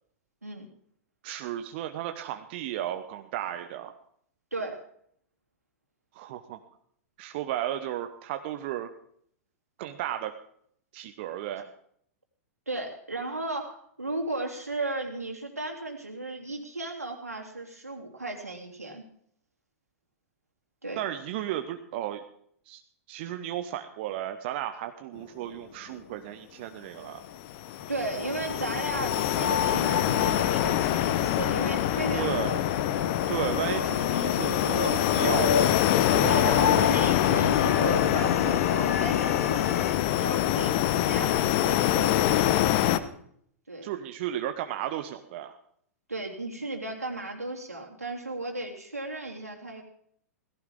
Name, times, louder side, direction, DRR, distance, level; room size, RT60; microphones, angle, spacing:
voice 1, 1.2-3.9 6.1-6.6 7.2-8.9 9.8-10.3 10.9-11.7 21.0-22.2 22.7-22.8 23.1-27.2 32.1-32.5 33.3-35.7 43.8-45.6, right 12 dB, 45° right, 8 dB, 1.0 m, -34 dB
voice 2, 12.7-19.0 20.8-21.0 27.9-32.6 33.3-33.6 36.2-39.8 40.2-42.7 43.7-43.9 46.1-49.8, right 2 dB, 85° right, 1 dB, 3.2 m, -35 dB
sound 1, 27.3-43.0, left 12 dB, 45° left, 1.0 m, -25 dB
sound 2, 27.7-39.9, left 7 dB, 70° left, 0.5 m, -32 dB
18.0 x 15.5 x 3.7 m, 0.66 s
figure-of-eight pair, 100°, 8 cm